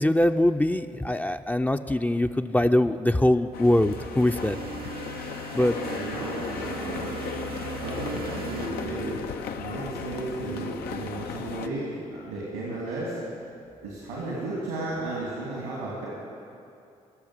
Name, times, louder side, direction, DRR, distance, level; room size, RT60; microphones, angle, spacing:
voice 1, 0.0-4.6 5.5-5.8, left 1 dB, 10° left, 7 dB, 0.6 m, -23 dB
sound 1, 3.5-11.7, left 7 dB, 65° left, 0.7 m, -36 dB
sound 2, 3.6-9.8, right 6 dB, 60° right, 0.7 m, -40 dB
voice 2, 5.5-7.2 7.6-9.2 9.6-13.2 13.8-16.1, right 2 dB, 90° right, -5 dB, 2.7 m, -34 dB
17.5 x 7.2 x 9.9 m, 2.6 s
hypercardioid pair, 40°, 17 cm